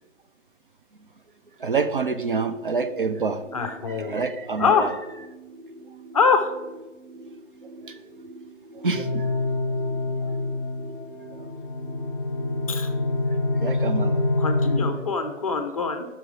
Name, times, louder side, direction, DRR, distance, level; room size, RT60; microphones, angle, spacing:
voice 1, 1.6-3.7 4.0-4.9 7.9-8.0 8.7-9.3 13.6-14.2, right 4 dB, 45° right, 8 dB, 0.4 m, -27 dB
sound 1, 2.2-13.7, right 2 dB, 75° right, 2.6 m, -45 dB
voice 2, 3.5-4.2 4.6-4.9 6.1-6.5 12.7-12.9 14.4-16.1, left 5 dB, 30° left, 7 dB, 0.6 m, -23 dB
sound 2, 8.9-14.8, left 2 dB, 10° left, 1.1 m, -26 dB
6.0 x 5.8 x 4.7 m, 1.1 s
figure-of-eight pair, 135°, 39 cm